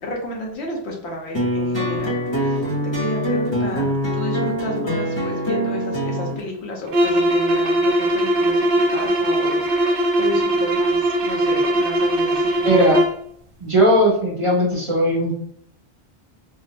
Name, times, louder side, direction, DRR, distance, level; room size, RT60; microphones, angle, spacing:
voice 1, 0.0-12.9, left 2 dB, 85° left, 0 dB, 1.1 m, -32 dB
sound 1, 1.3-6.4, equal, 30° left, 0.8 m, -23 dB
sound 2, 6.9-13.2, right 1 dB, 65° right, 0.7 m, -20 dB
voice 2, 12.6-13.0 13.6-15.3, equal, 35° right, -3 dB, 0.8 m, -17 dB
3.6 x 2.0 x 2.8 m, 0.64 s
omnidirectional pair, 1.1 m